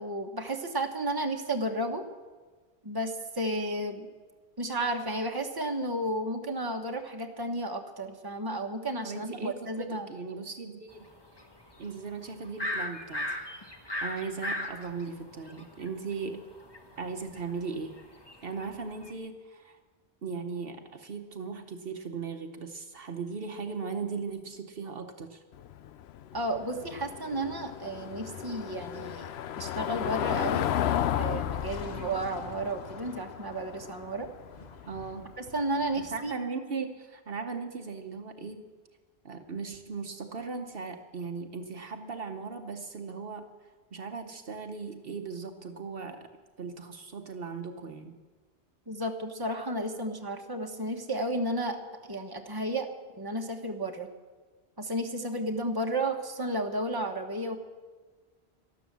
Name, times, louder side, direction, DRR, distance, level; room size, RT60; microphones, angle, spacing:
voice 1, 0.0-2.0 2.8-4.1 4.6-10.1 26.3-29.3 29.6-30.6 31.2-34.3 35.4-36.3 48.9-52.9 53.2-54.1 54.8-57.6, right 1 dB, 20° right, 3 dB, 1.3 m, -32 dB
voice 2, 9.0-11.1 11.8-13.7 14.0-16.4 17.0-18.0 18.4-19.8 20.2-25.4 34.9-35.3 36.1-38.6 39.2-43.5 43.9-46.3 46.6-48.1, right 5 dB, 65° right, 6 dB, 1.2 m, -38 dB
sound 1, 11.4-11.9 12.2-15.9 16.3-19.1, left 1 dB, 25° left, 1.4 m, -35 dB
Car passing by / Engine, 25.5-36.2, left 10 dB, 85° left, 0.9 m, -34 dB
sound 2, 31.3-33.8 34.3-35.5, equal, 40° left, 1.9 m, -49 dB
12.5 x 12.5 x 7.5 m, 1.4 s
omnidirectional pair, 1.1 m